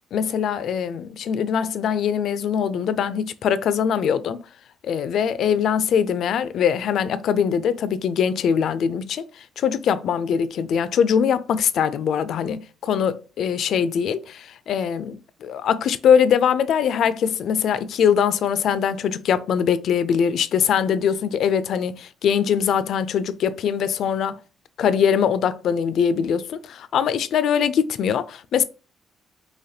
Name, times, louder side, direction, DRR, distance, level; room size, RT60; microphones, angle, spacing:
voice 1, 0.1-4.4 4.8-24.4 24.8-28.6, left 7 dB, 70° left, 0.4 m, -22 dB
4.0 x 2.9 x 2.7 m
cardioid pair, 90°, 0 cm